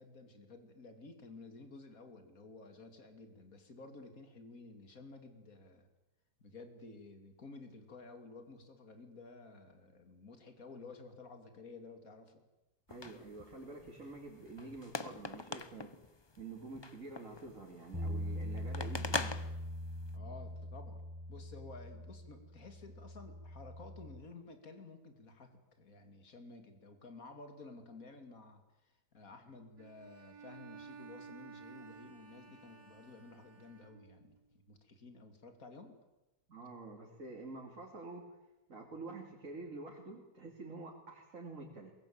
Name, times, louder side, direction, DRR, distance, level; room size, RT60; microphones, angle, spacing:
voice 1, 0.0-5.9 6.4-12.4 20.1-21.0 21.3-34.3 34.7-36.0, left 3 dB, 55° left, 7 dB, 3.1 m, -53 dB
sound 1, 12.9-20.2, left 3 dB, 25° left, 0.6 m, -44 dB
voice 2, 12.9-15.9 16.4-19.4 36.5-38.4 38.7-41.9, right 3 dB, 50° right, 0 dB, 3.3 m, -48 dB
sound 2, 17.9-24.2, equal, 15° right, 5.5 m, -42 dB
Bowed string instrument, 29.8-34.4, right 5 dB, 85° right, 4.2 m, -54 dB
23.0 x 21.5 x 8.9 m, 1.0 s
omnidirectional pair, 1.7 m